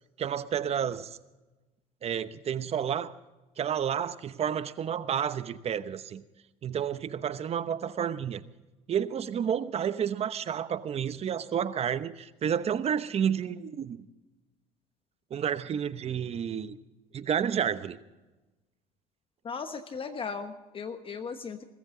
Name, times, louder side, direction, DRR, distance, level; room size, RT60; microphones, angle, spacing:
voice 1, 0.2-1.2 2.0-3.2 3.6-6.2 6.6-8.5 8.9-14.1 15.3-16.8 17.1-18.0, right 8 dB, 45° right, 0.9 m, -30 dB
voice 2, 19.4-21.6, left 5 dB, 35° left, 1.2 m, -37 dB
21.0 x 14.0 x 3.9 m
supercardioid pair, 90°, 15 cm